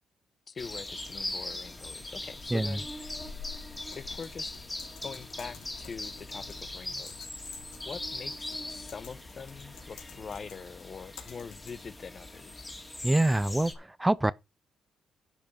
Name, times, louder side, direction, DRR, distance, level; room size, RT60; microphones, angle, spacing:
voice 1, 0.5-3.3 3.9-4.6 5.0-7.3 7.9-12.7, left 5 dB, 45° left, 0.8 m, -44 dB
sound 1, 0.6-13.8, left 2 dB, 15° left, 2.2 m, -41 dB
sound 2, 1.6-10.7, left 6 dB, 70° left, 3.4 m, -52 dB
Typing, 3.9-12.0, left 7 dB, 90° left, 3.1 m, -53 dB
voice 2, 13.0-14.3, right 1 dB, 10° right, 0.4 m, -25 dB
11.0 x 5.2 x 5.3 m
cardioid pair, 90°, 0 cm